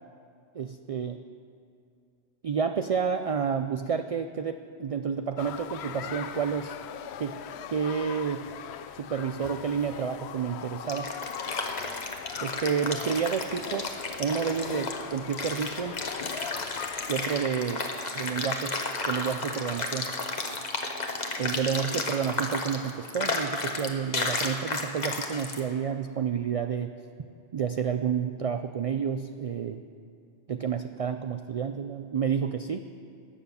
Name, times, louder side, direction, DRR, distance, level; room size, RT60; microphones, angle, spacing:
voice 1, 0.5-1.2 2.4-6.7 7.2-7.4 7.7-8.5 8.9-11.1 12.4-16.0 17.1-17.9 18.2-20.1 21.4-26.9 27.5-29.8 30.5-32.8, right 7 dB, 60° right, 8 dB, 0.3 m, -30 dB
sound 1, 5.4-17.5, left 9 dB, 75° left, 0.8 m, -40 dB
sound 2, 10.6-25.6, left 3 dB, 40° left, 1.2 m, -33 dB
18.5 x 7.0 x 6.9 m, 2.5 s
omnidirectional pair, 1.1 m